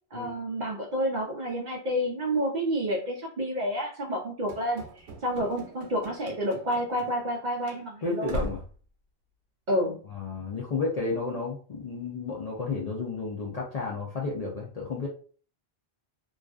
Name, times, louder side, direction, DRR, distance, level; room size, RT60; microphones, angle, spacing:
voice 1, 0.1-8.3 9.7-10.0, equal, 55° right, 0 dB, 0.5 m, -29 dB
Run / Slam, 4.5-7.4 7.6-7.8 8.3-8.8, right 1 dB, 85° right, 0.9 m, -39 dB
voice 2, 8.0-8.6 10.1-15.1, left 4 dB, 50° left, -3 dB, 0.5 m, -32 dB
2.5 x 2.3 x 2.3 m, 0.41 s
omnidirectional pair, 1.1 m